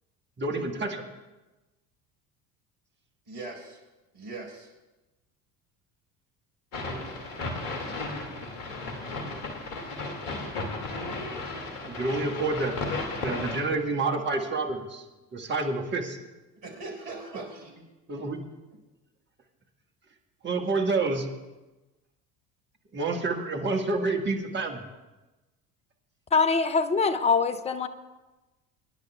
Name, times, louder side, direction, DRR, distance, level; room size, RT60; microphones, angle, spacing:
voice 1, 0.4-1.0 11.9-12.8 13.2-15.1 15.3-16.2 18.1-18.4 20.4-21.3 22.9-24.8, right 3 dB, 20° right, 1 dB, 1.7 m, -28 dB
voice 2, 3.2-3.8 4.1-4.7 16.6-17.9 18.1-18.2, right 3 dB, 55° right, -1 dB, 5.0 m, -40 dB
sound 1, 6.7-13.6, left 2 dB, 55° left, 2.5 m, -34 dB
voice 3, 26.3-27.9, left 4 dB, 15° left, 10 dB, 0.4 m, -23 dB
25.5 x 10.5 x 2.4 m, 1.1 s
figure-of-eight pair, 65°, 49 cm